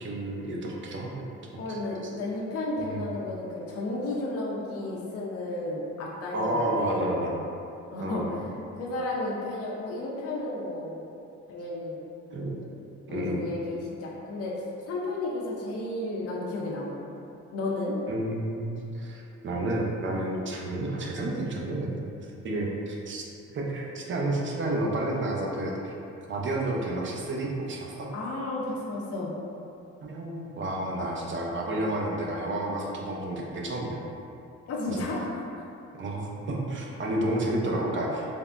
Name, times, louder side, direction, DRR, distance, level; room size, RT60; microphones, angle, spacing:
voice 1, 0.0-1.1 1.7-1.8 2.8-3.1 6.3-7.4 8.0-8.4 12.3-12.5 13.1-13.4 18.1-23.2 23.5-25.9 26.3-28.1 30.0-34.1 34.9-35.1 36.0-38.3, right 1 dB, 40° right, -2 dB, 0.5 m, -30 dB
voice 2, 1.6-7.1 7.9-8.4 8.8-11.1 11.5-12.1 13.1-14.5 14.9-17.0 17.5-18.0 28.1-29.3 34.7-35.6, left 2 dB, 50° left, -4 dB, 0.5 m, -33 dB
3.4 x 2.1 x 2.4 m, 2.7 s
cardioid pair, 90°, 30 cm